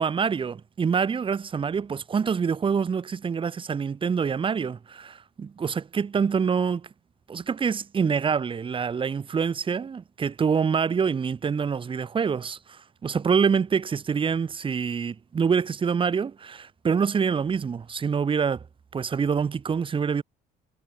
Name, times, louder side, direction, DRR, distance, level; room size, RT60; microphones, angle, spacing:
voice 1, 0.0-6.9 7.3-18.6 18.9-20.2, right 6 dB, 30° right, 1.4 m, -26 dB
cardioid pair, 110°, 17 cm